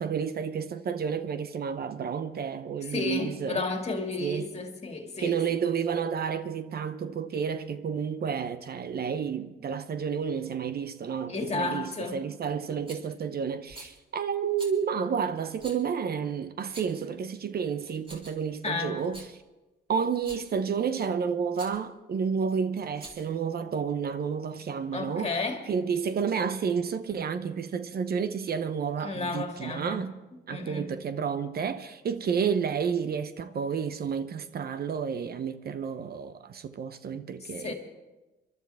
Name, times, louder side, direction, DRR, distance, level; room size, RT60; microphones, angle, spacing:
voice 1, 0.0-3.6 4.2-4.5 5.2-19.2 19.9-25.4 25.7-30.2 30.5-37.7, right 6 dB, 50° right, 0.8 m, -30 dB
voice 2, 2.9-5.3 11.3-12.2 18.6-19.0 24.9-25.6 29.0-30.0 30.5-30.9 37.4-37.7, left 3 dB, 30° left, 2.3 m, -32 dB
Rattle, 12.9-13.1 13.7-14.0 14.6-14.8 15.6-15.8 16.6-17.1 17.8-18.5 19.0-19.3 20.1-20.5 21.5-21.8 22.8-23.4, right 1 dB, 25° right, 3.6 m, -46 dB
25.5 x 12.0 x 3.5 m
cardioid pair, 90°, 20 cm